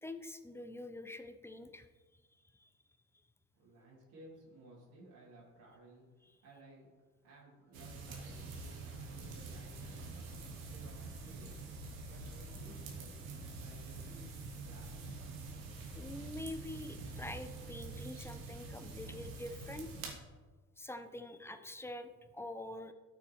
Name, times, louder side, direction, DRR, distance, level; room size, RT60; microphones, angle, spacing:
voice 1, 0.0-1.9 2.5-2.7 15.9-19.9 20.8-22.9, left 1 dB, 5° left, 10 dB, 0.8 m, -45 dB
voice 2, 3.5-6.9 7.2-11.6 12.0-14.9, right 1 dB, 65° right, -6 dB, 2.7 m, -58 dB
sound 1, 7.7-20.1, right 3 dB, 85° right, 1.4 m, -46 dB
13.0 x 6.1 x 3.1 m, 1.3 s
hypercardioid pair, 50°, 39 cm